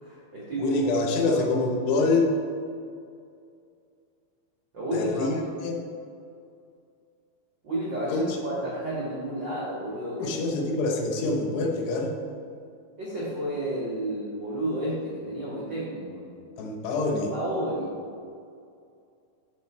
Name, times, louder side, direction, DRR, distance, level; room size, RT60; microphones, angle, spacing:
voice 1, 0.0-0.7 1.2-1.4 4.7-5.6 7.6-10.5 13.0-16.2 17.3-18.0, right 1 dB, 80° right, -7 dB, 1.0 m, -31 dB
voice 2, 0.6-2.3 4.9-5.8 8.1-8.4 10.2-12.2 16.6-17.3, left 3 dB, 75° left, 2 dB, 2.9 m, -26 dB
13.5 x 4.7 x 4.3 m, 2.4 s
omnidirectional pair, 5.1 m